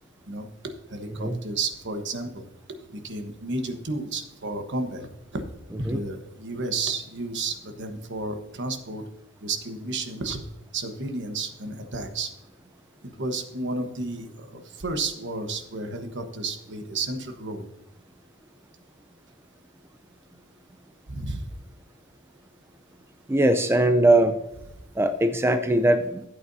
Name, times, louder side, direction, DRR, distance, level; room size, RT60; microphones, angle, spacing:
voice 1, 0.3-2.4 2.9-5.4 5.8-9.1 9.4-10.4 10.7-12.3 13.0-17.7 21.1-21.5, right 3 dB, 60° right, 6 dB, 1.2 m, -32 dB
voice 2, 23.3-24.4 25.0-26.2, right 1 dB, 10° right, 8 dB, 0.4 m, -20 dB
13.0 x 8.4 x 2.7 m, 0.88 s
head